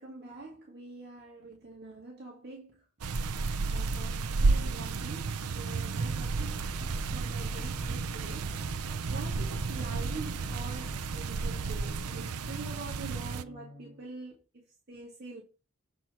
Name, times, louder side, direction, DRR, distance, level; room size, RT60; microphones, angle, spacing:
voice 1, 0.0-2.9 3.7-8.8 9.1-15.4, right 3 dB, 45° right, 2.2 m, -45 dB
sound 1, 3.0-13.4, right 4 dB, 90° right, 0.6 m, -32 dB
sound 2, 5.4-14.0, equal, 5° left, 3.9 m, -46 dB
8.0 x 4.6 x 5.7 m
head